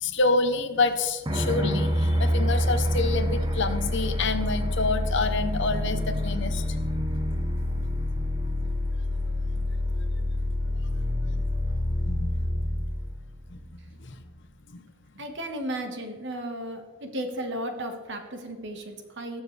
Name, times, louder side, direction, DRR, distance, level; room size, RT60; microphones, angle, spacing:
voice 1, 0.0-6.7 12.1-12.3 13.5-13.6, left 3 dB, 55° left, 9 dB, 0.9 m, -27 dB
sound 1, 1.3-14.0, left 1 dB, 20° right, 0.9 m, -27 dB
voice 2, 15.1-19.4, right 1 dB, 55° right, 5 dB, 1.5 m, -34 dB
19.5 x 7.2 x 3.3 m, 1.5 s
head